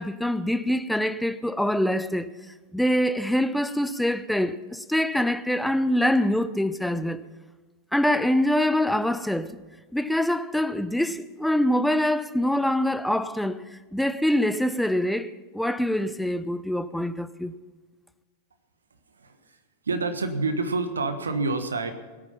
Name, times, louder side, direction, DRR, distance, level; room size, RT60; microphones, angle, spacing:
voice 1, 0.0-2.3 2.7-7.3 7.9-9.6 9.9-13.7 13.9-17.5, left 1 dB, ahead, 0.6 m, -24 dB
voice 2, 19.1-19.6 19.8-21.9, right 3 dB, 75° right, 1.3 m, -28 dB
20.0 x 8.9 x 5.7 m
figure-of-eight pair, 90°, 0 cm